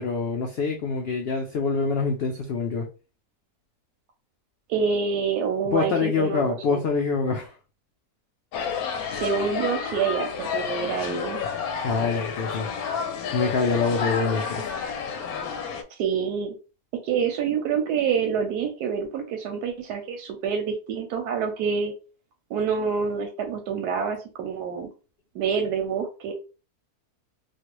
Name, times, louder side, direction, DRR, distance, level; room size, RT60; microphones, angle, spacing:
voice 1, 0.0-2.9 5.7-7.5 11.8-12.7 13.3-14.7, left 4 dB, 90° left, 0.5 m, -25 dB
voice 2, 4.7-6.8 9.1-11.4 16.0-16.6 17.0-21.9 22.5-24.9 25.3-26.3, right 6 dB, 90° right, 1.2 m, -27 dB
sound 1, 8.5-15.8, left 6 dB, 70° left, 1.0 m, -30 dB
3.2 x 2.4 x 2.9 m
omnidirectional pair, 1.7 m